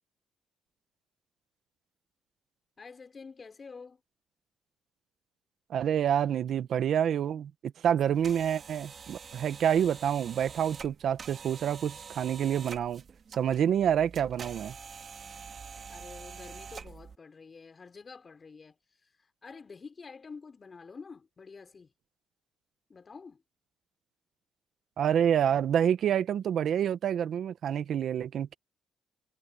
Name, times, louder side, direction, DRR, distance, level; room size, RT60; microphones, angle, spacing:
voice 1, 2.8-4.0 15.9-18.8 19.4-21.9 22.9-23.4, left 5 dB, 35° left, 6.3 m, -48 dB
voice 2, 5.7-7.5 7.8-13.0 13.4-14.7 25.0-28.5, right 9 dB, 65° right, 1.3 m, -27 dB
sound 1, 8.0-17.2, right 6 dB, 45° right, 5.3 m, -46 dB
cardioid pair, 85°, 0 cm